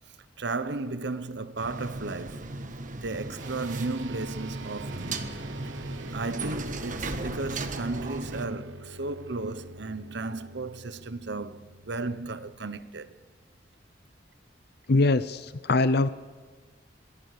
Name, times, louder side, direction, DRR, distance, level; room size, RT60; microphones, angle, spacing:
voice 1, 0.4-2.6 2.9-5.2 6.1-13.2, right 3 dB, 65° right, 1.0 m, -34 dB
sound 1, 1.6-8.5, right 2 dB, 45° right, 1.6 m, -36 dB
sound 2, 3.4-13.1, right 2 dB, 85° right, 1.4 m, -46 dB
voice 2, 14.9-16.1, left 2 dB, 60° left, 0.6 m, -23 dB
27.0 x 19.0 x 6.7 m
head